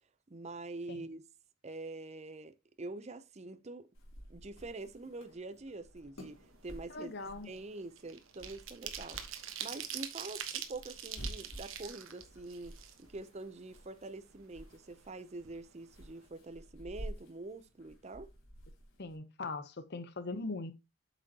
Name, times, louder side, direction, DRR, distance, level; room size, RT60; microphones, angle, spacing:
voice 1, 0.3-1.3 1.6-3.9 4.3-7.1 7.4-18.3, right 2 dB, 30° right, 0.6 m, -45 dB
sound 1, 3.9-19.2, equal, 75° left, 3.1 m, -51 dB
sound 2, 6.4-6.6 6.9-13.4 13.7-13.8 14.2-15.1 15.4-15.6 15.9-16.2, right 9 dB, 70° right, 1.2 m, -44 dB
voice 2, 6.9-7.5 19.0-20.7, left 3 dB, 50° left, 0.8 m, -40 dB
8.4 x 6.0 x 2.8 m
head